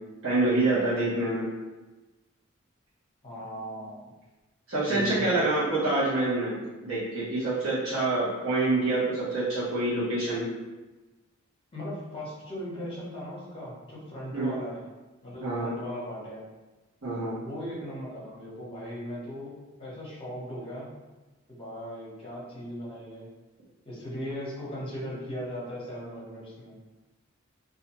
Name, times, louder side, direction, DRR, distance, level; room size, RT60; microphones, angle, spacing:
voice 1, 0.2-1.5 4.7-6.6 6.8-10.4 14.3-14.5 15.4-15.7 17.0-17.4, right 2 dB, 70° right, -10 dB, 0.9 m, -26 dB
voice 2, 3.2-4.1 4.9-5.7 11.7-14.8 15.2-16.4 17.4-20.9 21.5-23.3 23.8-26.8, equal, 30° left, -6 dB, 0.9 m, -38 dB
2.5 x 2.2 x 2.9 m, 1.1 s
head